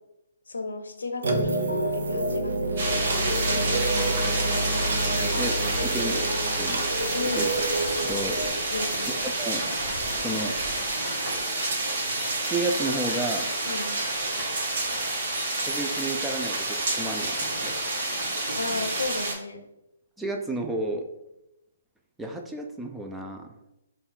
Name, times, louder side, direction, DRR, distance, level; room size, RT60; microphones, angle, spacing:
voice 1, 0.5-4.7 7.1-7.5 8.7-9.1 13.7-14.0 18.5-19.6, left 3 dB, 90° left, 5 dB, 0.6 m, -34 dB
sound 1, 1.2-8.5, right 2 dB, 75° right, 0.6 m, -28 dB
sound 2, 2.8-19.3, right 2 dB, 60° right, 1.0 m, -28 dB
voice 2, 5.8-6.3 6.6-6.9 7.3-7.5 8.0-8.4 9.2-9.6 10.2-10.5 12.5-13.5 15.6-17.8 20.2-21.1 22.2-23.6, right 2 dB, 5° right, 3 dB, 0.4 m, -31 dB
4.0 x 2.3 x 3.7 m, 0.88 s
hypercardioid pair, 145°, 0 cm